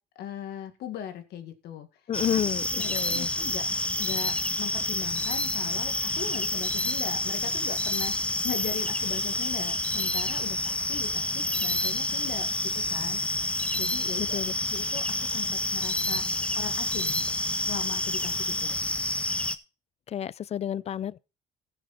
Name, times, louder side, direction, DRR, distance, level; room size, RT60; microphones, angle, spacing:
voice 1, 0.2-1.9 2.3-2.4 2.7-3.7 4.0-13.2 13.8-16.3 16.6-17.2 17.6-18.8, left 9 dB, 75° left, 1.9 m, -39 dB
voice 2, 2.1-3.3 14.2-14.5 20.1-21.2, left 10 dB, 40° left, 0.4 m, -30 dB
sound 1, 2.1-19.6, left 1 dB, 5° left, 0.8 m, -28 dB
15.0 x 6.6 x 4.2 m
cardioid pair, 110°, 17 cm